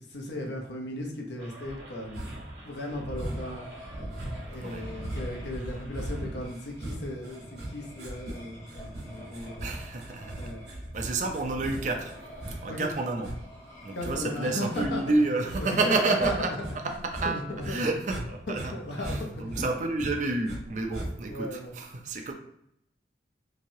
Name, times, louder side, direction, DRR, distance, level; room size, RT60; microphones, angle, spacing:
voice 1, 0.0-2.3 2.7-3.7 4.5-9.7 10.4-10.6 12.7-12.9 13.9-15.0 15.6-16.6 17.2-17.8 18.5-19.6 21.3-21.8, left 1 dB, 75° left, 1 dB, 0.7 m, -36 dB
sound 1, 1.4-6.5, right 1 dB, 80° right, 1.0 m, -40 dB
sound 2, 2.1-2.6 3.2-3.6 4.1-16.7 17.0-18.3 18.5-20.6 20.9-21.4, right 1 dB, 60° right, 1.1 m, -39 dB
sound 3, 3.2-15.9, equal, 15° left, 0.7 m, -49 dB
voice 2, 9.6-12.1 12.6-13.3 13.8-18.7 19.0-22.3, right 3 dB, 45° right, 3 dB, 0.4 m, -30 dB
3.0 x 2.7 x 2.7 m, 0.75 s
head